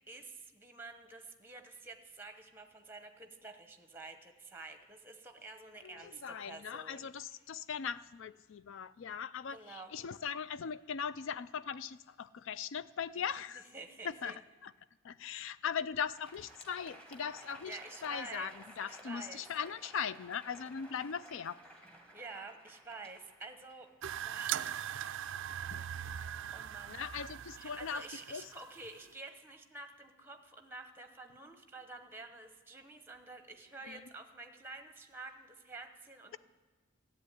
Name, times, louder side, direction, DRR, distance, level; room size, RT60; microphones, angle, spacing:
voice 1, 0.1-7.1 9.5-9.9 13.7-14.4 17.4-19.4 22.1-23.9 24.2-24.7 26.5-27.0 27.6-36.4, right 3 dB, 10° right, 7 dB, 0.9 m, -49 dB
voice 2, 5.8-13.7 14.0-14.7 15.0-21.6 25.7-25.9 26.9-28.5 33.8-34.1, left 7 dB, 60° left, 16 dB, 0.4 m, -40 dB
Crowd, 16.1-24.4, right 1 dB, 5° left, 1.4 m, -56 dB
sound 1, 24.0-29.1, right 10 dB, 55° right, 0.4 m, -41 dB
13.0 x 7.9 x 9.8 m, 1.4 s
head